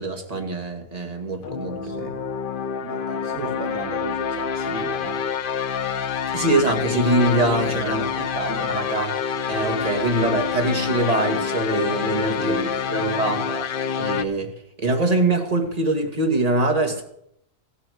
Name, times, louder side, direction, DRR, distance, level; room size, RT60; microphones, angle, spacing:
voice 1, 0.0-2.1 3.3-3.5 6.3-8.0 8.4-9.1 9.5-12.6 12.9-13.4 14.0-14.5 14.8-17.0, right 2 dB, 30° right, 3 dB, 2.0 m, -23 dB
sound 1, 1.4-14.2, left 7 dB, 50° left, 0.8 m, -27 dB
voice 2, 1.8-2.3 2.8-5.3 7.8-8.8 12.3-14.1, right 6 dB, 60° right, 4 dB, 1.3 m, -36 dB
15.0 x 8.5 x 7.9 m, 0.74 s
omnidirectional pair, 1.4 m